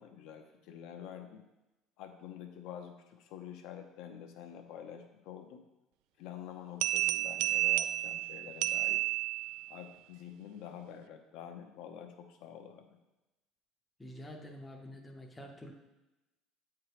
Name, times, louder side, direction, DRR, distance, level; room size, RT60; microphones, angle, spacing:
voice 1, 0.0-1.5 2.0-5.6 6.2-9.0 9.7-13.0, left 9 dB, 60° left, 5 dB, 0.8 m, -47 dB
sound 1, 6.8-9.8, right 16 dB, 70° right, 0.3 m, -31 dB
voice 2, 14.0-15.7, equal, 5° left, 0 dB, 0.7 m, -47 dB
8.5 x 4.7 x 4.9 m, 1.0 s
cardioid pair, 175°, 0 cm